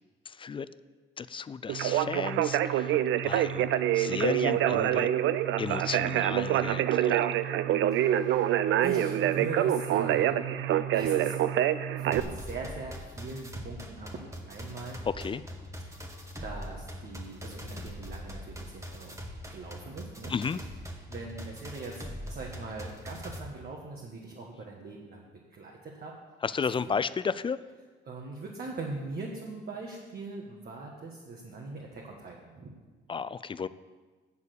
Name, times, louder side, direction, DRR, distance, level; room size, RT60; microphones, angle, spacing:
voice 1, 0.3-0.7 1.2-3.0 3.2-3.6 3.9-5.1 5.6-7.2 15.2-15.4 20.3-20.6 26.4-27.6 33.1-33.7, left 6 dB, 25° left, 16 dB, 0.4 m, -33 dB
Conversation, 1.7-12.2, right 11 dB, 75° right, 0.5 m, -26 dB
voice 2, 7.9-8.5 8.8-11.3 11.9-15.0 15.9-16.1 16.4-19.2 19.5-20.7 21.1-26.2 26.9-27.0 28.0-32.8, right 3 dB, 50° right, -1 dB, 1.4 m, -41 dB
sound 1, 12.1-23.4, equal, 15° right, 1.3 m, -42 dB
8.3 x 7.2 x 6.6 m, 1.4 s
cardioid pair, 90°, 20 cm